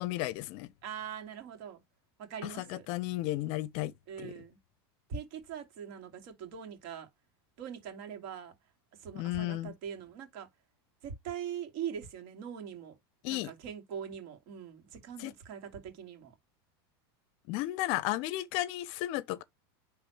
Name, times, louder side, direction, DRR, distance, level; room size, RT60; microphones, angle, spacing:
voice 1, 0.0-0.7 2.4-3.9 4.2-4.3 9.1-9.7 13.2-13.5 15.2-15.3 17.5-19.4, left 16 dB, 50° left, 0.6 m, -34 dB
voice 2, 0.8-1.8 2.2-2.9 4.1-4.6 5.1-7.1 7.6-8.6 8.9-10.5 11.0-13.0 13.3-16.3, right 8 dB, 55° right, 2.6 m, -42 dB
9.8 x 3.5 x 3.2 m
supercardioid pair, 150°, 13 cm